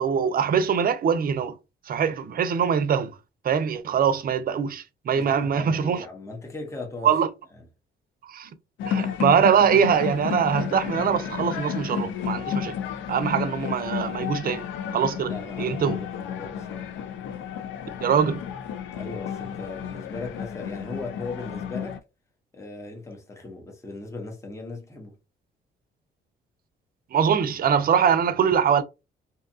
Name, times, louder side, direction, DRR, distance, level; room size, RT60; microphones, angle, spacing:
voice 1, 0.0-1.5 1.9-3.1 3.4-6.0 7.0-7.3 8.3-8.5 8.9-12.8 13.1-14.6 14.9-15.3 15.6-16.0 18.0-18.4 27.1-28.8, right 7 dB, 45° right, 0.5 m, -23 dB
voice 2, 5.1-7.1 7.6-7.7 15.2-16.9 18.9-22.0 22.5-25.1, left 3 dB, 15° left, 0.8 m, -38 dB
sound 1, 8.8-22.0, left 8 dB, 75° left, 0.4 m, -32 dB
2.7 x 2.3 x 2.6 m
cardioid pair, 90°, 20 cm